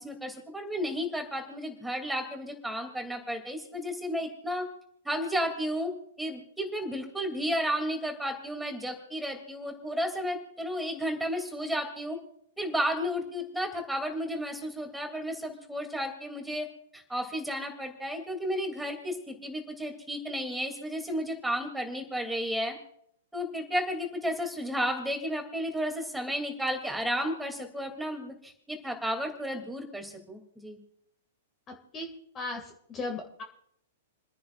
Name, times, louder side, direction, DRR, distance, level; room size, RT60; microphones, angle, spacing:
voice 1, 0.0-4.7 5.0-5.9 6.2-12.2 12.6-16.7 16.9-22.8 23.3-30.8, equal, 5° right, 3 dB, 3.0 m, -33 dB
voice 2, 32.3-33.4, left 2 dB, 25° left, 2 dB, 2.4 m, -36 dB
30.0 x 10.0 x 2.6 m, 0.71 s
hypercardioid pair, 115°, 0 cm